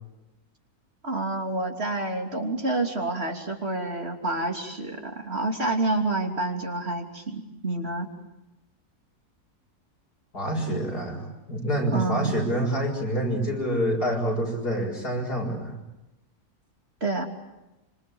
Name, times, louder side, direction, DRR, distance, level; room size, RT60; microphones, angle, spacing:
voice 1, 1.0-8.1 11.9-12.3 17.0-17.2, right 2 dB, 40° right, 3 dB, 3.3 m, -28 dB
voice 2, 10.3-15.8, right 1 dB, 80° left, 1 dB, 7.6 m, -27 dB
26.5 x 26.0 x 8.7 m, 0.98 s
omnidirectional pair, 1.7 m